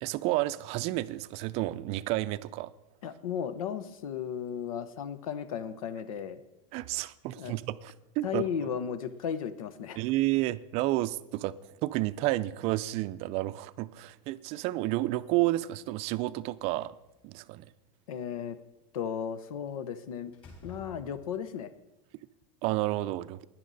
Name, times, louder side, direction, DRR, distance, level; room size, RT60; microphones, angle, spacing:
voice 1, 0.0-2.7 6.7-8.4 10.0-11.5 11.8-16.9 17.2-17.7 22.6-23.4, right 17 dB, 35° right, 0.4 m, -30 dB
voice 2, 3.0-6.4 7.3-7.5 8.2-10.1 18.1-18.6 18.9-20.3 20.6-21.7, left 8 dB, 90° left, 1.0 m, -35 dB
Slam, 16.5-17.5 19.7-19.9 20.3-21.5, left 1 dB, 30° left, 4.2 m, -52 dB
16.5 x 10.5 x 4.1 m
supercardioid pair, 155°, 17 cm